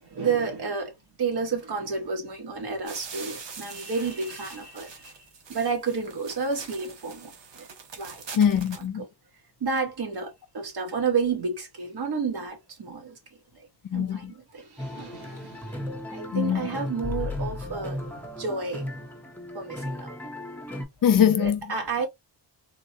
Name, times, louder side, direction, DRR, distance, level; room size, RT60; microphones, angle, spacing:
voice 1, 0.0-5.1 5.5-7.7 8.0-8.2 9.6-13.2 13.5-13.7 13.9-18.9 19.5-20.2 21.4-22.1, right 5 dB, 65° right, 1.5 m, -31 dB
sound 1, 2.9-8.9, right 5 dB, 85° right, 1.1 m, -43 dB
voice 2, 8.4-9.0 13.9-14.3 16.3-16.6 21.0-21.7, left 8 dB, 50° left, 0.7 m, -22 dB
sound 2, 14.8-20.8, left 1 dB, 5° left, 0.9 m, -35 dB
3.7 x 2.3 x 2.8 m
wide cardioid pair, 130°, 42 cm